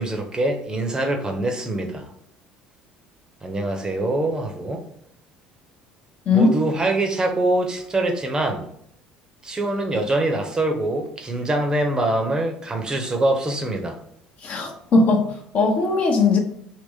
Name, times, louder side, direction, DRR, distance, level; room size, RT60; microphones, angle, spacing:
voice 1, 0.0-2.1 3.4-4.8 6.3-8.7 9.4-14.0, right 2 dB, 20° right, 0.7 m, -24 dB
voice 2, 14.4-16.4, left 3 dB, 40° left, 0.7 m, -19 dB
3.4 x 2.9 x 2.7 m
figure-of-eight pair, 60°, 4 cm